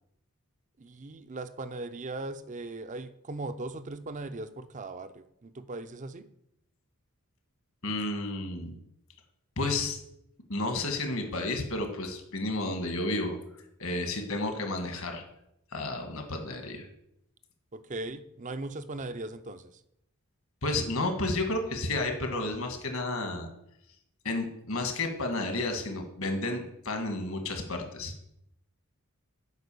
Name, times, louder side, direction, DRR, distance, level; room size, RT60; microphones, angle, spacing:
voice 1, 0.8-6.3 17.7-19.7, right 2 dB, 35° right, 12 dB, 0.5 m, -39 dB
voice 2, 7.8-8.8 9.6-10.0 10.5-13.4 13.8-15.2 15.7-16.9 20.6-23.5 24.2-28.1, left 2 dB, 65° left, 5 dB, 1.6 m, -31 dB
8.1 x 5.3 x 6.9 m, 0.78 s
head